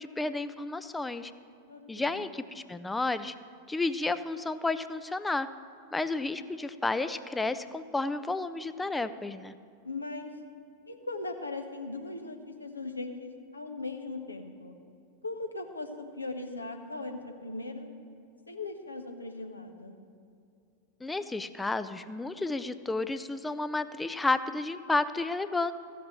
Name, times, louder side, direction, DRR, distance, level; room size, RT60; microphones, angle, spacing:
voice 1, 0.0-1.3 1.9-3.3 3.7-5.5 5.9-9.5 21.0-25.7, left 3 dB, 10° left, 12 dB, 0.4 m, -31 dB
voice 2, 1.7-2.2 9.8-10.3 10.9-14.8 15.2-17.9 18.5-20.0, left 3 dB, 80° left, 5 dB, 1.0 m, -39 dB
14.5 x 5.9 x 7.5 m, 2.5 s
figure-of-eight pair, 90°, 0 cm